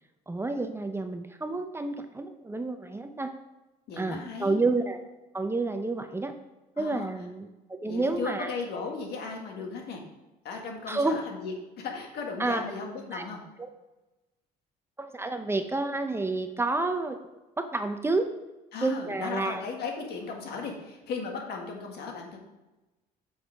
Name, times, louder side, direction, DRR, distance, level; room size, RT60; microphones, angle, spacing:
voice 1, 0.3-3.3 4.0-5.0 5.3-6.3 6.8-8.5 10.9-11.2 12.4-12.6 13.1-13.2 13.6-13.7 15.0-17.2 17.6-18.3 18.8-19.6, right 3 dB, 15° right, 7 dB, 0.6 m, -29 dB
voice 2, 3.9-4.6 6.8-7.1 7.8-10.0 10.4-13.4 18.7-22.4, left 4 dB, 70° left, 1 dB, 1.8 m, -36 dB
9.0 x 6.4 x 3.5 m, 1.1 s
cardioid pair, 110°, 17 cm